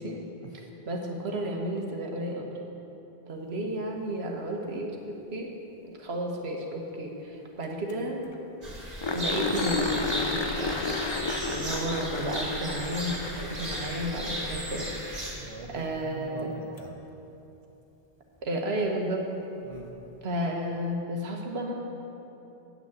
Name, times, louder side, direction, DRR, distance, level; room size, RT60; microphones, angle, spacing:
voice 1, 0.0-0.7 11.5-11.7 15.4-17.0 19.6-19.9, right 3 dB, 40° right, 1 dB, 0.6 m, -44 dB
voice 2, 0.8-2.5 3.3-5.5 5.8-8.3 9.1-10.8 11.5-14.9 15.7-16.5 18.4-19.2 20.2-21.7, right 1 dB, 80° right, 1 dB, 1.5 m, -32 dB
sound 1, 7.6-7.7 7.9-8.0 8.3-8.4 9.0-14.4 16.8-16.9 19.7-19.8, left 3 dB, 30° left, 0.6 m, -32 dB
sound 2, 8.6-15.3, equal, 65° right, 2.3 m, -35 dB
9.0 x 6.2 x 7.9 m, 2.9 s
omnidirectional pair, 1.1 m